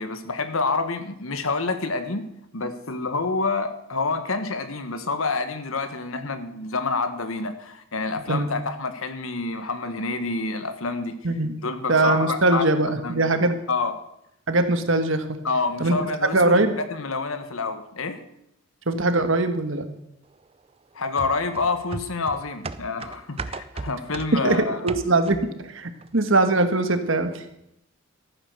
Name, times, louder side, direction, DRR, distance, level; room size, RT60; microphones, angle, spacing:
voice 1, 0.0-2.3 2.5-11.2 11.6-12.7 13.0-13.2 13.7-13.9 15.4-18.2 20.9-24.8, left 3 dB, 80° left, 10 dB, 1.3 m, -28 dB
voice 2, 11.9-13.6 14.5-15.4 15.8-16.0 16.3-16.7 18.9-19.9 24.3-27.4, right 2 dB, 65° right, 8 dB, 1.4 m, -21 dB
sound 1, 21.2-25.6 26.0-26.1, right 3 dB, 25° right, 0.5 m, -36 dB
14.0 x 9.1 x 6.6 m, 0.79 s
head